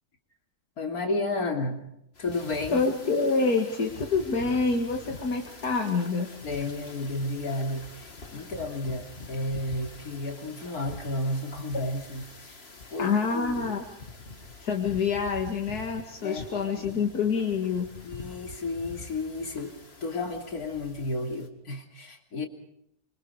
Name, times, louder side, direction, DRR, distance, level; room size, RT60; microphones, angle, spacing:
voice 1, 0.8-1.8 2.2-2.8 6.4-7.9 8.3-12.5 12.9-13.7 16.2-17.0 18.0-19.7 20.0-22.5, left 2 dB, 75° left, 3 dB, 3.5 m, -32 dB
sound 1, 2.1-21.5, left 3 dB, 40° left, 2.3 m, -45 dB
voice 2, 2.7-6.3 13.0-13.8 14.6-17.9, left 4 dB, 90° left, 2 dB, 2.5 m, -27 dB
26.0 x 25.5 x 4.9 m, 0.75 s
omnidirectional pair, 1.6 m